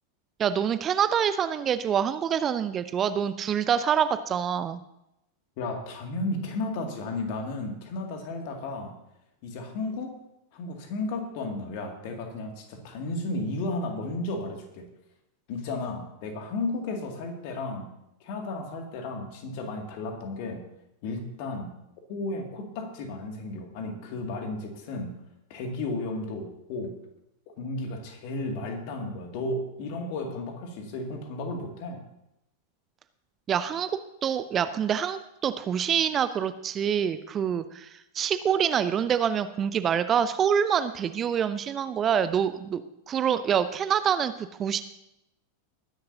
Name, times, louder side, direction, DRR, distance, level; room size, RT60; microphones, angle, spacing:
voice 1, 0.4-4.8 33.5-33.9 34.2-44.8, right 8 dB, 25° right, 13 dB, 0.6 m, -26 dB
voice 2, 5.6-8.9 9.4-10.1 10.5-14.8 15.5-17.8 18.2-20.6 21.0-21.7 22.1-25.1 25.5-26.9 27.6-32.0, left 2 dB, 45° left, 3 dB, 2.4 m, -33 dB
20.0 x 10.5 x 2.8 m, 0.85 s
figure-of-eight pair, 90°, 0 cm